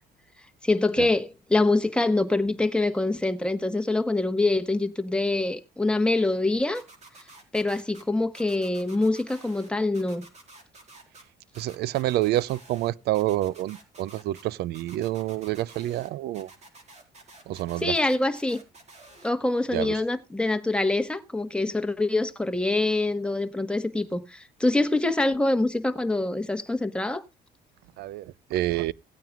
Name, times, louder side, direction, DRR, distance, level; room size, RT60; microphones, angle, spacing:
voice 1, 0.6-6.8 7.5-10.3 17.8-18.6 19.2-27.2, left 2 dB, 5° left, 1.2 m, -25 dB
sound 1, 6.7-8.0 8.3-9.7 9.9-11.2 11.5-12.9 13.1-14.4 14.7-16.1 16.3-19.3, right 2 dB, 40° right, 4.4 m, -50 dB
voice 2, 11.6-16.5 17.5-17.9 19.7-19.9 28.0-28.9, right 15 dB, 75° right, 0.5 m, -28 dB
17.5 x 9.0 x 2.4 m
cardioid pair, 110°, 17 cm